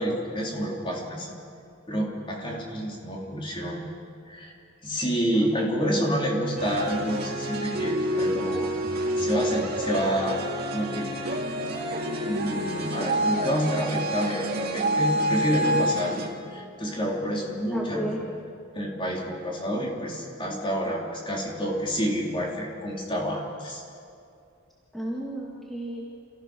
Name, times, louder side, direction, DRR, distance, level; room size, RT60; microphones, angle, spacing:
voice 1, 0.0-1.3 1.9-3.9 4.3-4.5 4.8-8.7 9.2-10.4 10.7-11.1 12.2-16.2 16.5-18.3 18.7-23.8, equal, 25° left, -2 dB, 3.5 m, -28 dB
voice 2, 5.3-6.1 17.7-18.2 24.9-26.2, right 1 dB, ahead, -5 dB, 2.1 m, -34 dB
sound 1, 6.6-16.3, equal, 45° right, 2.6 m, -28 dB
28.0 x 15.5 x 6.3 m, 2.5 s
head